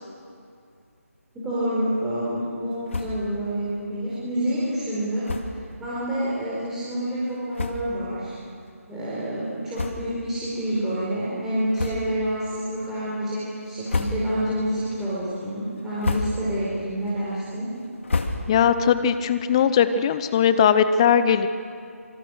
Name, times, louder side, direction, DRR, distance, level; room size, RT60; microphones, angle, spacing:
voice 1, 1.3-8.3 8.9-17.7, right 1 dB, 5° right, -11 dB, 4.6 m, -28 dB
sound 1, 2.9-3.4 3.7-3.8 4.1-4.2 5.2-5.7 6.4-6.5 7.2-7.3 7.5-8.1 8.6-8.8 9.7-10.4 10.7-10.9 11.7-12.3 12.8-13.2 13.7-14.6 14.9-15.4 15.8-16.6 17.0-18.8, left 3 dB, 55° left, 2.6 m, -31 dB
voice 2, 18.5-21.5, left 8 dB, 20° left, 12 dB, 0.8 m, -19 dB
26.0 x 25.0 x 6.3 m, 2.4 s
figure-of-eight pair, 155°, 8 cm